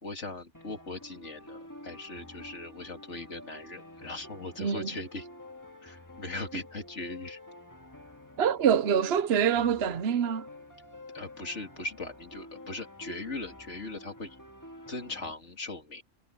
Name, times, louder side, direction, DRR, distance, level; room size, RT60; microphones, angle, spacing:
voice 1, 0.0-5.3 5.8-7.4 11.1-14.4 14.9-16.0, left 2 dB, 65° left, 3.2 m, -39 dB
sound 1, 0.5-15.3, left 1 dB, 15° left, 2.1 m, -48 dB
voice 2, 4.6-4.9 8.4-10.5, right 8 dB, 60° right, 1.0 m, -25 dB
omnidirectional pair, 1.3 m